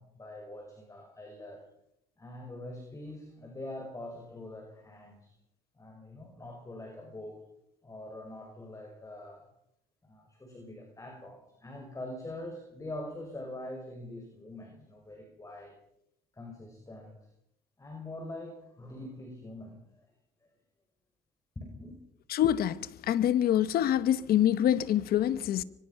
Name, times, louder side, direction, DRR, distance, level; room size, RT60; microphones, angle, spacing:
voice 1, 0.0-1.7 2.2-5.3 5.7-7.4 7.8-9.4 10.0-15.8 16.3-17.2 17.8-20.1 21.6-22.0, left 1 dB, 20° left, 5.9 m, -44 dB
voice 2, 22.3-22.8 23.1-25.6, left 11 dB, 65° left, 1.0 m, -25 dB
24.0 x 19.5 x 5.8 m
cardioid pair, 110°, 17 cm